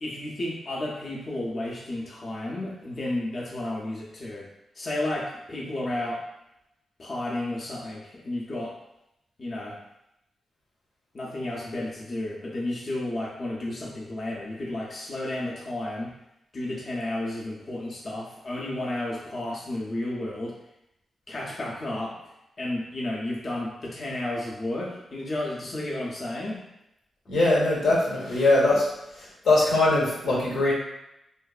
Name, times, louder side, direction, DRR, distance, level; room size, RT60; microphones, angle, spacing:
voice 1, 0.0-4.5 4.7-6.2 7.0-8.7 9.4-9.8 11.1-16.1 16.5-20.5 21.3-22.2 22.6-26.6, left 1 dB, 45° left, -4 dB, 0.5 m, -32 dB
voice 2, 27.3-28.9 29.4-30.7, left 2 dB, 90° left, -5 dB, 0.8 m, -21 dB
2.5 x 2.3 x 2.3 m, 0.86 s
cardioid pair, 70°, 0 cm